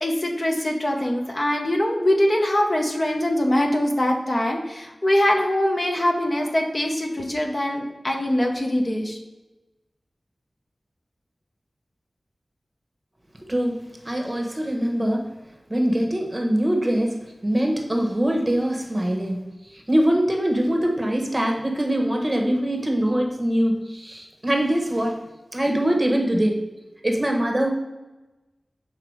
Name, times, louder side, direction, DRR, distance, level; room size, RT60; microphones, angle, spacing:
voice 1, 0.0-9.2, left 1 dB, 40° left, 2 dB, 0.9 m, -23 dB
voice 2, 14.0-15.3 15.7-17.2 17.4-19.4 19.7-25.2 25.5-26.6 27.0-27.7, right 1 dB, 20° right, 1 dB, 1.2 m, -23 dB
5.8 x 4.4 x 4.7 m, 1.1 s
wide cardioid pair, 80°, 0 cm